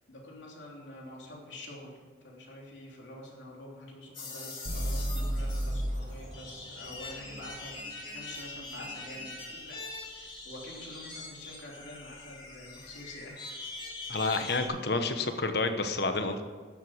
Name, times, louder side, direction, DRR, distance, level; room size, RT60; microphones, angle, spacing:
voice 1, 0.1-9.8 10.1-13.7, left 1 dB, 85° left, -2 dB, 3.2 m, -47 dB
sound 1, 4.1-14.7, left 2 dB, 30° left, 2.5 m, -43 dB
sound 2, 4.7-8.6, equal, 45° right, 1.8 m, -34 dB
voice 2, 14.1-16.4, left 3 dB, 60° left, 7 dB, 1.0 m, -29 dB
12.0 x 7.9 x 7.2 m, 1.5 s
head